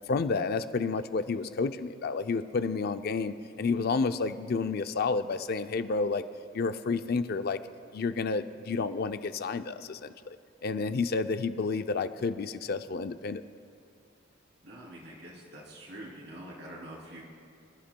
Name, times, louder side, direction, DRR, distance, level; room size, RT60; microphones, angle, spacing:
voice 1, 0.1-6.2 6.5-7.6 7.9-10.1 10.6-13.4, left 4 dB, 55° left, 10 dB, 0.4 m, -30 dB
voice 2, 14.6-17.2, right 1 dB, 65° right, -4 dB, 3.0 m, -45 dB
26.0 x 11.5 x 2.2 m, 2.5 s
head